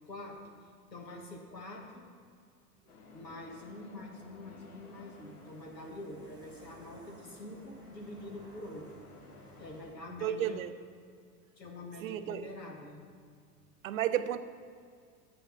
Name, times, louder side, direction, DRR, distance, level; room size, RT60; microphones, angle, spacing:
voice 1, 0.1-0.4 0.9-2.1 3.1-8.9 9.6-10.6 11.6-13.0, left 1 dB, 85° left, 1 dB, 1.5 m, -46 dB
sound 1, 2.9-9.8, left 3 dB, 65° left, 1.4 m, -55 dB
sound 2, 4.6-9.9, right 2 dB, 10° right, 1.2 m, -59 dB
voice 2, 10.2-10.8 12.0-12.5 13.8-14.4, right 11 dB, 55° right, 12 dB, 0.6 m, -32 dB
8.5 x 6.8 x 5.9 m, 2.1 s
figure-of-eight pair, 85°, 49 cm